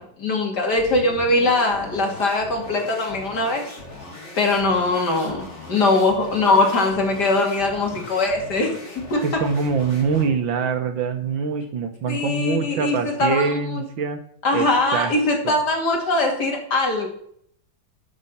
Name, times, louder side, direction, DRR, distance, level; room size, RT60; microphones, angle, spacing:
voice 1, 0.0-3.7 4.4-8.7 9.1-9.4 12.1-13.8 14.4-17.1, left 2 dB, 55° left, 2 dB, 3.2 m, -21 dB
sound 1, 0.8-10.4, left 1 dB, 35° left, 3.2 m, -39 dB
voice 2, 9.2-14.2 14.5-14.7 14.9-15.1 15.4-15.5, right 5 dB, 75° right, 8 dB, 2.0 m, -24 dB
12.5 x 6.0 x 5.7 m, 0.65 s
omnidirectional pair, 2.1 m